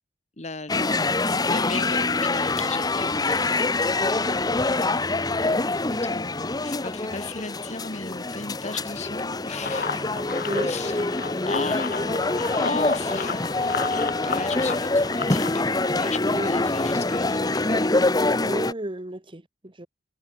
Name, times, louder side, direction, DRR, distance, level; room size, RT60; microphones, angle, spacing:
voice 1, 0.4-1.1 1.4-4.6 5.8-10.0 10.6-11.0 11.5-11.8 12.5-18.2, left 3 dB, 40° left, 2.1 m, -36 dB
sound 1, 0.7-18.7, left 2 dB, 20° left, 0.9 m, -25 dB
sound 2, 9.5-16.4, left 5 dB, 55° left, 1.5 m, -34 dB
voice 2, 18.4-19.9, right 1 dB, 30° right, 1.3 m, -32 dB
head